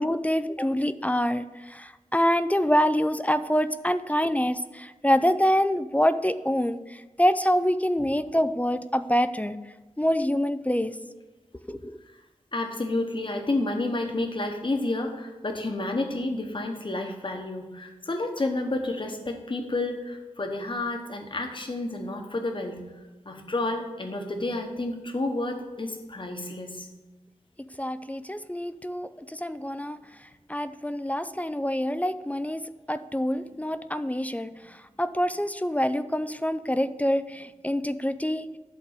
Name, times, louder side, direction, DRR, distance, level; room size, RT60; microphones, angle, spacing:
voice 1, 0.0-9.6 10.0-11.0 11.7-12.0 27.8-30.0 30.5-32.6 32.9-34.5 35.0-38.5, equal, 10° left, 12 dB, 0.3 m, -26 dB
voice 2, 12.5-22.8 23.2-26.9, left 2 dB, 40° left, 4 dB, 1.1 m, -30 dB
11.5 x 3.8 x 6.5 m, 1.1 s
wide cardioid pair, 85°, 13 cm